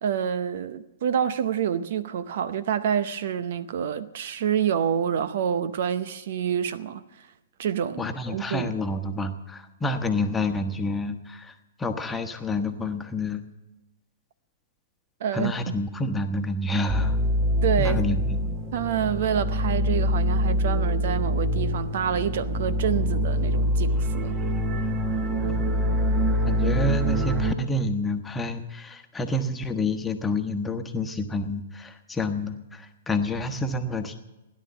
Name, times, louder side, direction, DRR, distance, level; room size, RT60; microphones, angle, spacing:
voice 1, 0.0-7.3 7.6-8.7 15.2-15.7 17.6-18.0 18.7-24.4, right 8 dB, 60° right, 0.7 m, -27 dB
voice 2, 8.0-13.4 15.3-17.2 17.8-18.4 26.5-34.2, left 2 dB, 10° left, 1.3 m, -28 dB
sound 1, 16.9-27.5, equal, 20° right, 1.4 m, -25 dB
17.0 x 10.5 x 7.1 m
hypercardioid pair, 120°, 0 cm